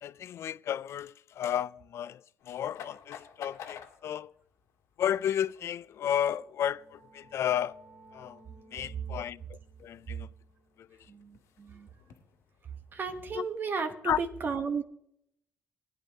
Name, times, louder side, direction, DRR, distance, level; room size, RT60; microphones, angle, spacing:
voice 1, 0.0-4.3 5.0-7.8 8.1-8.4 8.7-10.3 10.8-10.9 13.3-13.5 14.0-14.2, left 10 dB, 60° left, 0.3 m, -33 dB
sound 1, 2.4-13.5, left 9 dB, 90° left, 1.8 m, -53 dB
sound 2, 6.3-11.8, right 2 dB, 20° right, 2.6 m, -59 dB
voice 2, 11.1-11.9 12.9-14.8, right 5 dB, 40° right, 0.9 m, -34 dB
18.5 x 10.0 x 2.8 m
cardioid pair, 115°, 5 cm